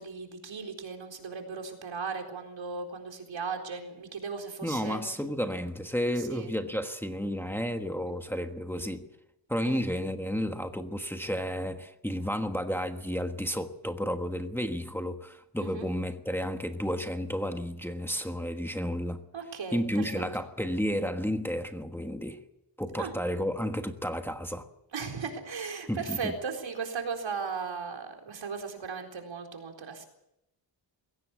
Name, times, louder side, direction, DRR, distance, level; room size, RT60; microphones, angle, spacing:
voice 1, 0.0-5.0 6.2-6.5 9.6-9.8 15.6-15.9 19.3-20.2 23.0-23.1 24.9-30.0, right 5 dB, 80° right, 4.2 m, -37 dB
voice 2, 4.6-9.1 9.5-19.2 19.7-22.4 22.8-24.7 25.9-26.3, equal, 5° left, 1.3 m, -32 dB
22.0 x 17.0 x 8.4 m
wide cardioid pair, 145°, 45 cm